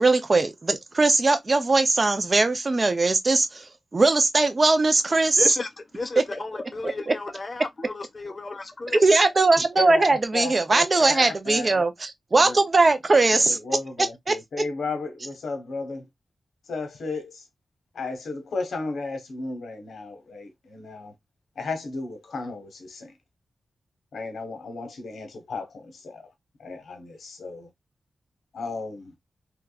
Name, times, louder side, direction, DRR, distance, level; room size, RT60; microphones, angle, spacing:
voice 1, 0.0-5.4 8.9-13.6 14.3-14.4, right 3 dB, 30° right, 0.5 m, -20 dB
voice 2, 5.3-9.1, left 3 dB, 30° left, 0.5 m, -33 dB
voice 3, 9.8-11.9 12.4-12.6 13.3-16.1 16.7-17.4 17.9-21.1 21.6-23.1 24.1-26.3 26.6-27.7 28.5-29.1, left 3 dB, 85° left, 1.1 m, -34 dB
3.4 x 3.0 x 2.3 m
wide cardioid pair, 170°, 0 cm